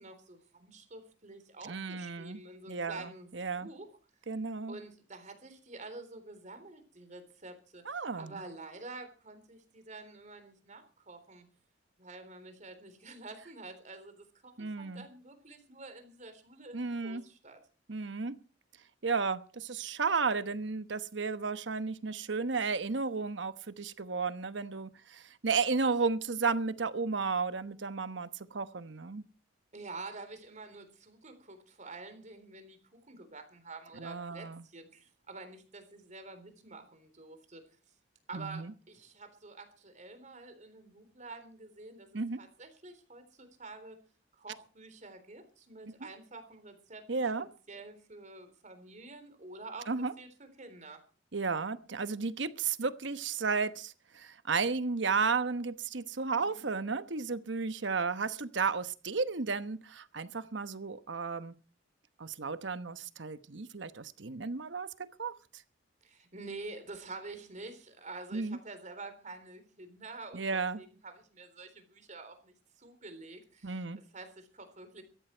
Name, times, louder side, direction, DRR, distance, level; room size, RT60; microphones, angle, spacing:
voice 1, 0.0-3.3 3.6-3.9 4.7-11.5 12.0-17.6 29.7-37.6 38.3-42.1 42.4-44.0 44.4-47.3 47.7-51.0 56.4-56.7 66.0-73.8 74.1-75.0, right 3 dB, 40° right, 8 dB, 3.7 m, -48 dB
voice 2, 1.6-3.7 4.3-4.8 7.9-8.4 14.6-15.0 16.7-17.2 17.9-18.3 19.0-29.2 34.0-34.6 38.3-38.7 42.1-42.4 47.1-47.5 49.9-50.1 51.3-61.5 62.2-64.9 65.2-65.3 68.3-68.6 70.3-70.8 73.6-74.0, right 4 dB, 70° right, 12 dB, 1.0 m, -33 dB
17.0 x 14.0 x 4.5 m, 0.37 s
head